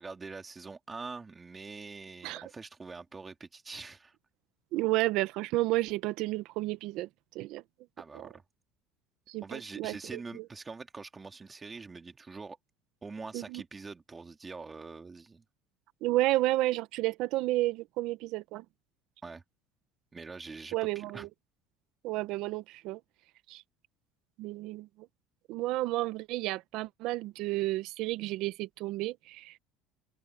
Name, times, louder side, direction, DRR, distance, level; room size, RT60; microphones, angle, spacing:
voice 1, 0.0-4.2 8.0-8.4 9.4-12.6 13.0-15.4 19.2-19.4 20.1-21.3, right 4 dB, 20° right, 2.7 m, -44 dB
voice 2, 4.7-7.1 7.3-7.6 8.1-8.3 9.3-10.2 13.3-13.6 16.0-18.6 20.7-21.3 22.0-23.0 23.5-23.6 24.4-24.9 25.5-29.5, right 18 dB, 65° right, 1.0 m, -31 dB
supercardioid pair, 100°, 0 cm